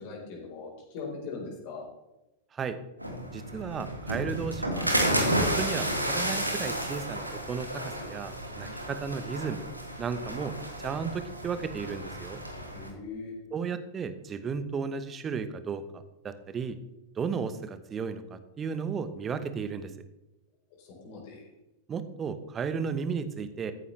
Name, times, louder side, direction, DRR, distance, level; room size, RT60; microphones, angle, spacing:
voice 1, 0.0-1.9 12.7-13.4 20.8-21.5, left 4 dB, 45° left, -1 dB, 4.1 m, -40 dB
sound 1, 3.0-12.9, right 1 dB, 85° right, 1.6 m, -32 dB
voice 2, 3.3-4.9 5.5-9.7 10.0-12.4 13.5-16.8 17.2-19.9 21.9-23.7, right 6 dB, 25° right, 11 dB, 0.9 m, -34 dB
14.0 x 9.3 x 3.2 m, 0.96 s
figure-of-eight pair, 90°, 0 cm